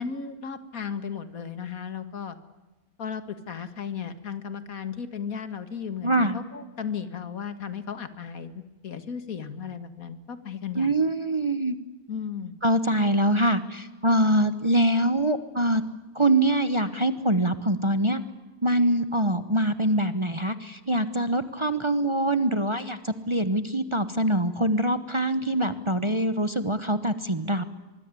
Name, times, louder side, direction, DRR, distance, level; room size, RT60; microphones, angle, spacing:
voice 1, 0.0-2.4 3.0-10.9 12.1-12.5, left 7 dB, 70° left, 12 dB, 2.1 m, -35 dB
voice 2, 6.0-6.4 10.7-11.8 12.6-15.8 16.1-18.2 18.6-27.6, right 1 dB, 20° right, 12 dB, 1.1 m, -24 dB
24.5 x 21.5 x 9.8 m, 1.2 s
omnidirectional pair, 1.5 m